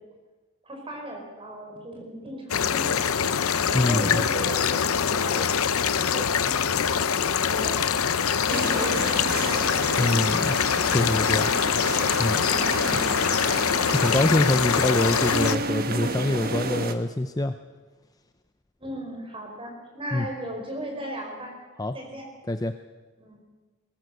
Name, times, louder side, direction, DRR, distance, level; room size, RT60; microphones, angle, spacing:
voice 1, 0.6-3.2 3.7-7.8 8.5-9.7 12.8-13.5 18.8-21.5 21.9-22.3 23.2-23.4, equal, 25° right, 1 dB, 5.0 m, -37 dB
sound 1, 2.5-15.5, left 7 dB, 70° left, 0.7 m, -24 dB
voice 2, 3.7-4.2 10.0-10.6 10.9-11.5 12.2-12.4 13.9-17.5 20.1-20.3 21.8-21.9 22.5-22.7, left 1 dB, 15° left, 8 dB, 0.6 m, -25 dB
sound 2, 8.5-16.9, right 3 dB, 40° right, 1.3 m, -31 dB
21.5 x 18.5 x 6.6 m, 1.3 s
head